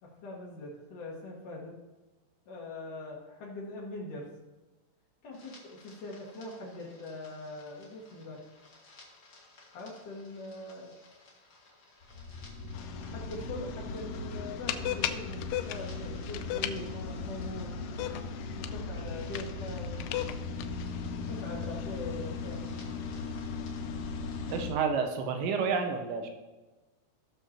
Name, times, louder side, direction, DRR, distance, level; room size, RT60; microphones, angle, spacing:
voice 1, 0.0-1.7 2.5-4.3 5.2-8.4 9.7-11.0 12.9-20.1 21.2-22.7, left 2 dB, 60° left, -3 dB, 2.6 m, -42 dB
sound 1, 5.3-24.7, left 3 dB, 45° left, 1.6 m, -39 dB
sound 2, 12.7-24.7, left 12 dB, 80° left, 2.5 m, -40 dB
voice 2, 24.5-26.3, right 5 dB, 90° right, 5 dB, 3.3 m, -30 dB
17.5 x 6.5 x 2.9 m, 1.1 s
omnidirectional pair, 5.0 m